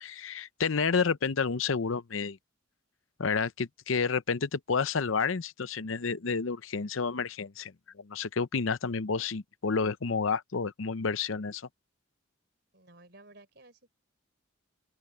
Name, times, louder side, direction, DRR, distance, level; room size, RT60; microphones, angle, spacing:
voice 1, 0.0-2.4 3.2-7.7 8.0-11.6, left 5 dB, 80° left, 0.7 m, -30 dB
voice 2, 12.7-13.9, right 2 dB, 55° right, 4.2 m, -55 dB
open air
head